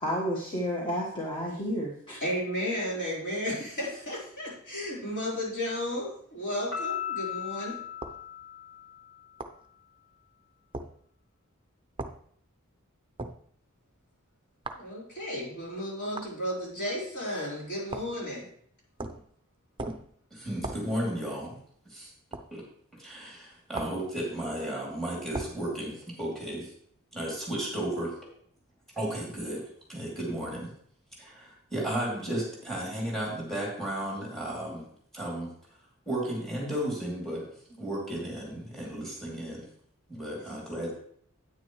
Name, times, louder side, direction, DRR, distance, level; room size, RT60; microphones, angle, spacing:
voice 1, 0.0-2.2, equal, 25° left, -3 dB, 1.5 m, -31 dB
voice 2, 2.2-7.8 14.7-18.4 40.4-40.6, equal, 55° left, -6 dB, 4.6 m, -33 dB
Piano, 6.7-9.3, left 9 dB, 85° left, 4.2 m, -37 dB
sound 1, 8.0-8.2 9.4-9.6 10.7-10.9 12.0-12.2 13.2-13.4 14.6-14.9 16.2-16.3 17.9-18.2 19.0-19.3 19.8-20.1 20.6-20.9 22.3-22.5 23.7-24.0 25.3-25.6, right 2 dB, 25° right, 0.6 m, -37 dB
voice 3, 20.3-21.6 21.9-22.1 22.5-22.6 22.9-26.7 27.1-28.2 28.9-30.7 31.2-34.9 35.1-35.5 36.1-39.7 40.1-40.9, right 1 dB, ahead, -3 dB, 3.1 m, -34 dB
9.6 x 9.1 x 3.2 m, 0.63 s
head